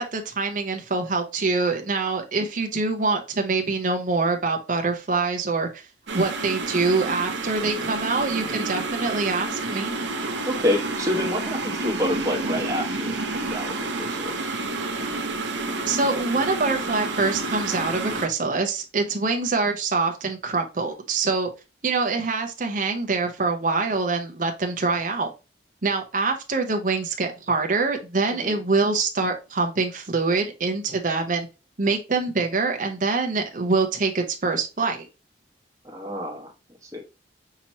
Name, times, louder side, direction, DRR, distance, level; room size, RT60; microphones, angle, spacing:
voice 1, 0.0-5.7 6.1-9.9 15.9-21.5 21.8-25.3 25.8-31.5 31.8-35.1, right 3 dB, 45° right, 0.7 m, -25 dB
sound 1, 6.1-18.3, right 3 dB, 80° right, 0.8 m, -29 dB
voice 2, 7.6-7.9 10.5-14.5 28.3-28.6 35.8-36.5 36.8-37.0, left 1 dB, 15° right, 1.2 m, -28 dB
5.8 x 2.9 x 2.9 m
head